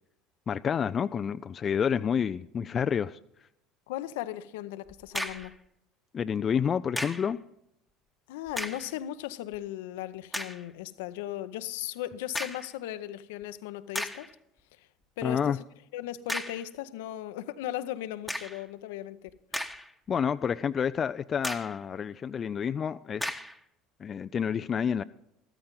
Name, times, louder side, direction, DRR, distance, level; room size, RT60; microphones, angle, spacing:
voice 1, 0.5-3.2 6.1-7.4 15.2-15.6 20.1-23.3 24.0-25.0, left 7 dB, 35° left, 0.4 m, -29 dB
voice 2, 3.9-5.5 8.3-14.3 15.2-15.6 15.9-19.3, left 13 dB, 70° left, 0.7 m, -37 dB
sound 1, 4.9-5.6 7.0-7.3 8.5-8.9 9.5-9.6 10.3-10.6 12.3-12.7 13.4-13.5 13.9-14.3 16.3-16.7 18.3-18.6 19.3-20.1 20.5-20.6 21.4-21.8 23.2-23.6, left 1 dB, ahead, 1.2 m, -35 dB
14.0 x 14.0 x 3.9 m
figure-of-eight pair, 70°, 0 cm